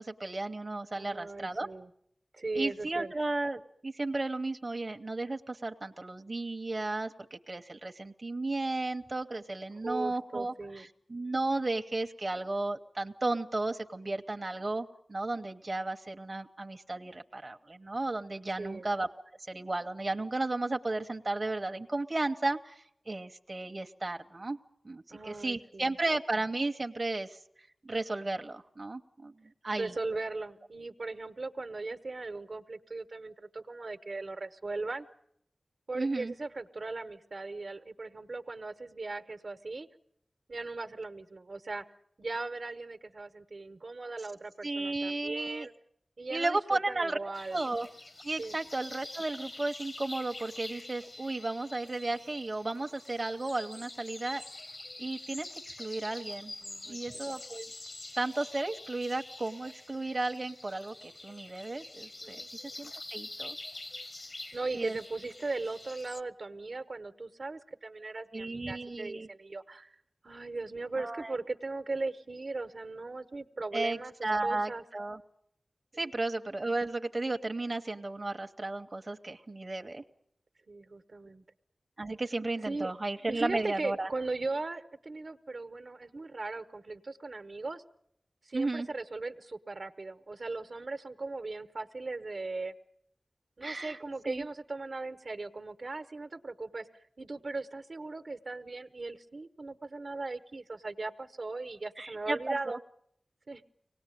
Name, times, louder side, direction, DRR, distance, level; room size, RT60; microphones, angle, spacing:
voice 1, 0.0-1.7 2.5-19.1 19.5-24.6 24.8-27.4 27.8-29.3 29.6-29.9 35.9-36.3 44.6-45.7 46.3-47.9 48.2-54.4 55.0-56.5 56.9-57.7 58.2-62.4 62.8-63.6 64.7-65.0 68.3-69.3 71.0-71.3 73.7-75.2 76.0-80.0 82.0-84.1 88.5-88.9 93.6-94.0 94.2-94.4 102.0-102.8, right 2 dB, 45° right, 5 dB, 0.9 m, -34 dB
voice 2, 0.9-1.9 2.3-3.1 9.8-10.9 18.6-18.9 25.1-26.0 29.8-35.1 35.9-39.9 40.5-41.9 42.2-45.7 46.2-47.6 48.4-48.6 56.6-57.3 62.2-62.5 64.5-70.0 70.2-74.8 75.9-76.0 80.7-81.4 82.7-82.9 83.3-87.8 88.4-92.7 93.6-102.8 103.5-103.6, right 3 dB, 75° right, 8 dB, 1.1 m, -38 dB
sound 1, 47.3-66.2, left 2 dB, 50° left, 0.9 m, -46 dB
24.5 x 18.5 x 9.1 m, 0.73 s
wide cardioid pair, 60°, 0 cm